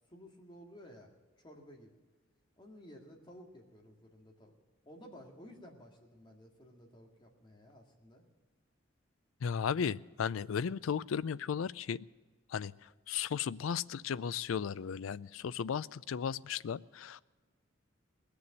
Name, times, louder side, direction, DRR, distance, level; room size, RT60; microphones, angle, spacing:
voice 1, 0.1-1.1 1.4-1.9 2.6-4.5 4.8-8.2, equal, 25° left, 1 dB, 2.1 m, -54 dB
voice 2, 9.4-12.0 12.5-12.7 13.1-17.2, left 7 dB, 80° left, 19 dB, 0.4 m, -35 dB
19.5 x 6.9 x 9.8 m, 1.3 s
head